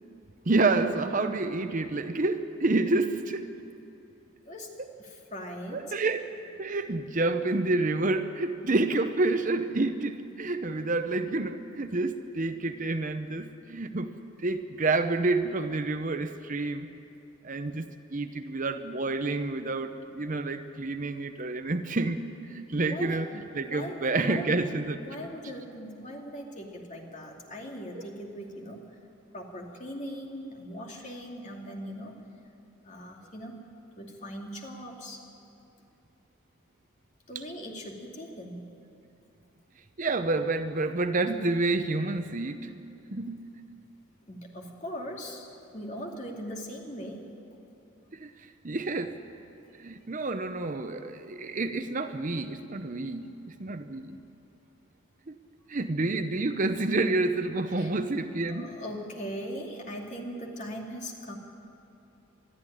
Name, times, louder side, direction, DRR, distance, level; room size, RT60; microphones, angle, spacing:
voice 1, 0.5-3.5 5.7-6.2 6.6-16.9 17.4-17.8 18.1-25.0 27.9-28.0 40.0-42.7 43.1-43.5 48.1-49.2 49.8-54.2 55.3-55.4 55.7-58.8, right 2 dB, 40° right, 9 dB, 0.7 m, -29 dB
voice 2, 5.0-5.9 22.8-23.2 23.6-24.7 24.9-28.8 29.3-32.2 32.8-33.6 34.0-35.2 37.3-38.7 44.3-47.2 57.8-57.9 58.5-61.4, equal, 35° left, 0 dB, 2.6 m, -40 dB
21.5 x 13.0 x 10.0 m, 2.8 s
head